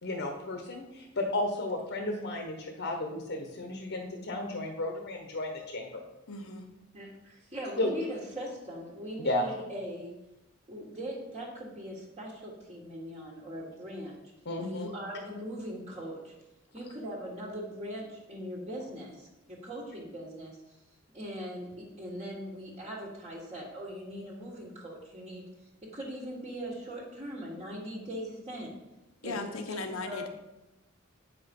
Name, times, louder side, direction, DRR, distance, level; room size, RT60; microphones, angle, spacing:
voice 1, 0.0-6.0 7.8-7.9 9.2-9.5 14.4-14.9, left 2 dB, 60° left, 3 dB, 1.1 m, -33 dB
voice 2, 6.3-6.7 14.6-14.9 29.2-30.3, left 3 dB, 85° left, 6 dB, 1.1 m, -38 dB
voice 3, 6.9-10.1 10.7-14.1 14.6-16.3 16.7-20.8 21.1-25.4 25.8-28.7 29.2-30.3, equal, 30° right, -4 dB, 1.7 m, -40 dB
8.9 x 6.0 x 5.4 m, 0.96 s
head